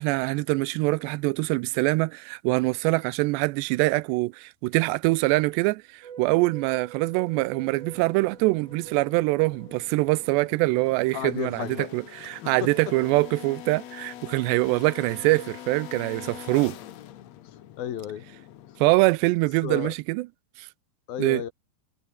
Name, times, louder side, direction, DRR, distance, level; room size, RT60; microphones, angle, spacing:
voice 1, 0.0-11.7 11.9-16.8 18.8-20.3 20.6-20.7 21.2-21.4, right 22 dB, 85° right, 2.8 m, -24 dB
sound 1, 6.0-11.2, right 7 dB, 50° right, 4.0 m, -45 dB
sound 2, 7.5-19.3, left 12 dB, 80° left, 1.5 m, -44 dB
voice 2, 11.1-11.9 12.4-12.9 17.8-18.2 19.6-19.9 21.1-21.5, left 10 dB, 65° left, 3.4 m, -33 dB
omnidirectional pair, 4.9 m